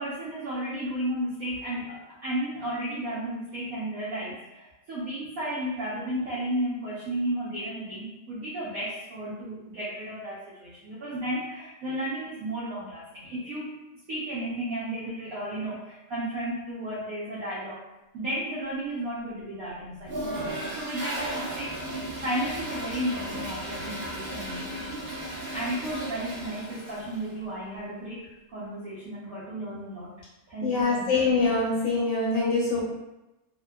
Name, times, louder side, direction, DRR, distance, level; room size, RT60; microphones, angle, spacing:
voice 1, 0.0-13.7 14.1-17.8 18.1-20.2 20.8-25.0 25.5-30.1 30.5-31.1, right 1 dB, 85° right, -7 dB, 0.7 m, -33 dB
Toilet flush, 20.0-27.3, right 1 dB, 60° right, 1.0 m, -35 dB
voice 2, 30.6-32.8, left 3 dB, 75° left, -6 dB, 1.4 m, -24 dB
3.4 x 2.1 x 2.2 m, 0.98 s
omnidirectional pair, 2.3 m